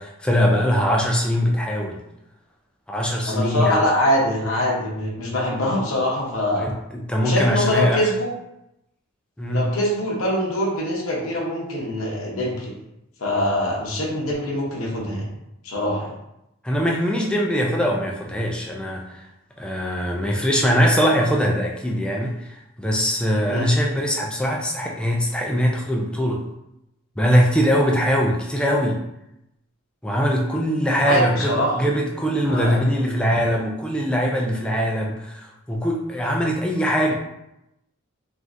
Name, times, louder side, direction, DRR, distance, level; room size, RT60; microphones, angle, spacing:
voice 1, 0.0-2.0 2.9-3.8 6.6-8.1 9.4-9.7 16.6-19.2 19.6-26.4 27.2-29.0 30.0-37.1, equal, 5° left, -1 dB, 0.3 m, -22 dB
voice 2, 3.3-6.7 7.2-8.3 9.5-12.7 13.2-15.3 15.6-16.1 23.5-23.7 31.0-31.7 32.4-33.1, left 1 dB, 65° left, -4 dB, 0.8 m, -23 dB
3.4 x 2.5 x 2.5 m, 0.86 s
head